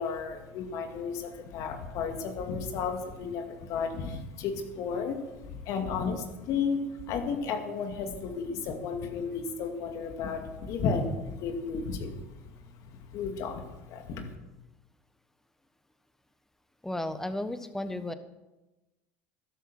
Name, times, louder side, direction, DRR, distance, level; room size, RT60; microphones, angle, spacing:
voice 1, 0.0-12.3 12.6-14.3, left 5 dB, 60° left, 5 dB, 2.4 m, -33 dB
voice 2, 16.8-18.1, left 1 dB, 5° left, 10 dB, 1.3 m, -33 dB
13.0 x 11.5 x 6.1 m, 1.0 s
hypercardioid pair, 85°, 7 cm